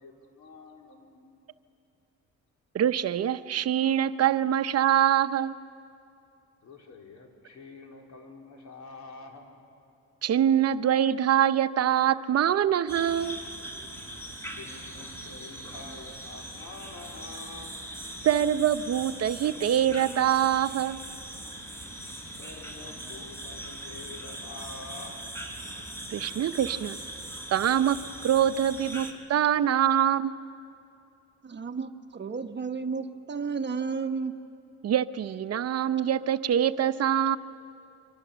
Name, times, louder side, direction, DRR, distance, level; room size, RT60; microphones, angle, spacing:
voice 1, 0.0-1.4 6.6-9.4 14.5-17.8 22.4-25.2 25.6-26.0, left 3 dB, 70° left, 1 dB, 3.8 m, -47 dB
voice 2, 2.7-5.5 10.2-13.4 18.2-21.0 26.1-27.0 27.5-28.0 28.2-30.4 34.8-37.4, right 10 dB, 55° right, 12 dB, 0.7 m, -24 dB
sound 1, 12.9-29.1, right 1 dB, 10° left, 3.9 m, -40 dB
voice 3, 31.4-34.4, right 5 dB, 35° right, 7 dB, 1.1 m, -32 dB
29.0 x 24.5 x 6.9 m, 2.7 s
cardioid pair, 90°, 30 cm